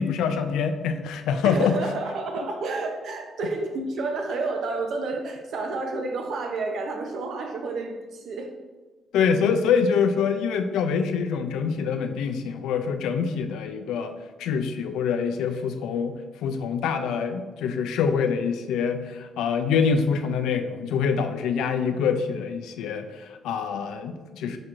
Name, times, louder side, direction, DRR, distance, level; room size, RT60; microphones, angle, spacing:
voice 1, 0.0-1.8 9.1-24.6, left 6 dB, 90° left, 7 dB, 0.3 m, -25 dB
voice 2, 1.4-8.5, right 3 dB, 70° right, 4 dB, 0.6 m, -30 dB
4.8 x 4.4 x 2.5 m, 1.3 s
cardioid pair, 90°, 0 cm